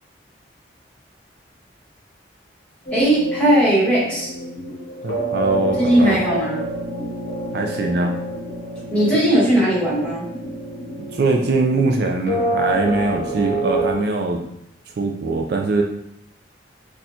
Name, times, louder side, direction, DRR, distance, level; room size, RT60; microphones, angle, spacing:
sound 1, 2.9-13.9, right 1 dB, 50° left, 0.8 m, -28 dB
voice 1, 2.9-4.3 5.8-6.7 8.9-10.2, right 1 dB, 5° left, -10 dB, 1.4 m, -18 dB
voice 2, 5.0-6.2 7.5-8.1 11.1-14.4 15.0-15.8, right 3 dB, 55° right, 2 dB, 0.3 m, -21 dB
4.1 x 2.4 x 2.7 m, 0.81 s
head